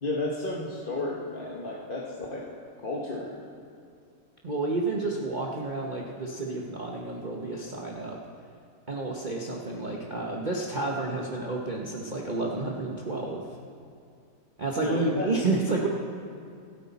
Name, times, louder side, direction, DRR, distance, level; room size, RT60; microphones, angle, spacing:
voice 1, 0.0-2.5 2.8-3.3 14.8-15.3, left 2 dB, 35° left, -4 dB, 1.3 m, -32 dB
voice 2, 4.4-8.2 8.9-13.5 14.6-15.9, right 3 dB, 30° right, -2 dB, 1.0 m, -30 dB
26.0 x 10.0 x 4.2 m, 2.3 s
omnidirectional pair, 1.9 m